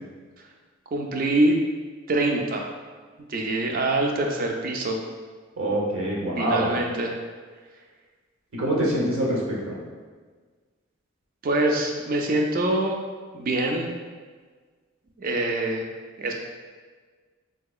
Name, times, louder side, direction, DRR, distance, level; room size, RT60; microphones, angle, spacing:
voice 1, 0.9-1.6 2.1-2.7 3.3-5.0 6.4-7.2 11.4-13.0 13.3-13.9 15.2-15.9 16.2-16.3, right 2 dB, 40° right, 2 dB, 0.4 m, -24 dB
voice 2, 5.6-6.8 8.5-9.7, right 1 dB, 75° right, -4 dB, 0.8 m, -25 dB
3.7 x 2.8 x 2.3 m, 1.5 s
head